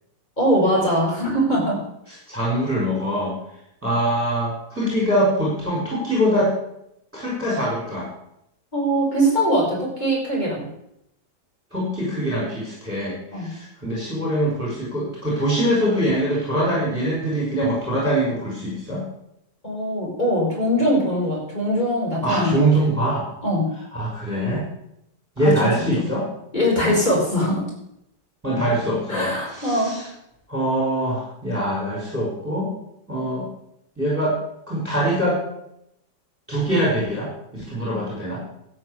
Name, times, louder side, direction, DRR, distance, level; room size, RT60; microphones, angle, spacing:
voice 1, 0.4-1.8 8.7-10.7 13.3-13.5 19.6-22.7 23.4-23.7 25.4-25.9 26.5-27.6 29.1-29.9, equal, 20° left, -4 dB, 6.2 m, -21 dB
voice 2, 2.3-3.4 3.8-6.5 7.1-8.1 11.7-19.0 22.2-23.3 23.9-24.7 25.4-26.3 28.4-30.0 30.5-32.7 33.1-33.5 34.0-34.4 34.7-35.4 36.5-38.4, right 1 dB, 5° right, -4 dB, 5.3 m, -23 dB
13.0 x 8.9 x 8.2 m, 0.79 s
omnidirectional pair, 2.0 m